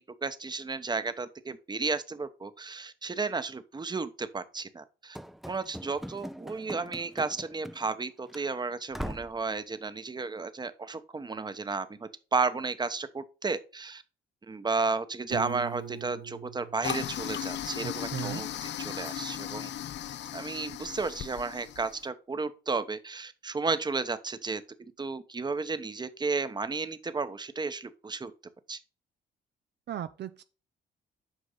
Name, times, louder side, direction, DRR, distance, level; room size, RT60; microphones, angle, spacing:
voice 1, 0.0-5.2 5.5-14.0 14.5-19.7 20.3-24.6 25.0-28.3 28.7-28.8, right 4 dB, 20° right, 0.9 m, -33 dB
Run / Slam, 5.1-8.0 8.3-8.5 8.9-9.4, equal, ahead, 0.5 m, -41 dB
Piano, 15.3-18.2, right 9 dB, 75° right, 2.9 m, -42 dB
Toilet flush, 16.8-22.0, left 11 dB, 60° left, 0.5 m, -37 dB
voice 2, 17.8-18.4 29.9-30.4, right 10 dB, 60° right, 0.6 m, -37 dB
8.1 x 5.2 x 4.0 m
cardioid pair, 90°, 20 cm